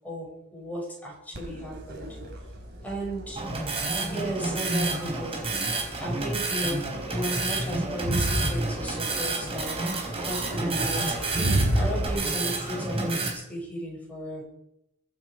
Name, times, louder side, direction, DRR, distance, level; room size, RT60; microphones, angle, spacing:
voice 1, 0.0-2.1 2.8-3.4 4.0-5.4 6.0-9.8 10.2-11.5 11.7-14.4, equal, 5° left, -3 dB, 7.9 m, -35 dB
Crowd, 1.3-12.1, right 1 dB, 50° right, 5.0 m, -33 dB
sound 1, 3.4-13.3, right 3 dB, 25° right, 4.2 m, -29 dB
24.0 x 9.6 x 5.1 m, 0.84 s
head